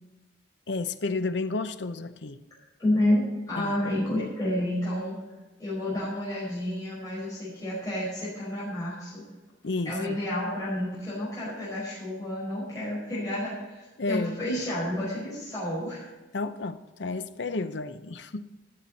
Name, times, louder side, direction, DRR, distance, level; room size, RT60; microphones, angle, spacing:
voice 1, 0.7-2.4 3.6-3.8 9.6-10.2 14.0-14.4 16.3-18.5, left 3 dB, 70° left, 0.7 m, -31 dB
voice 2, 2.8-5.2 5.6-9.2 9.8-16.1, left 1 dB, 20° left, 5.0 m, -30 dB
13.0 x 12.5 x 4.1 m
head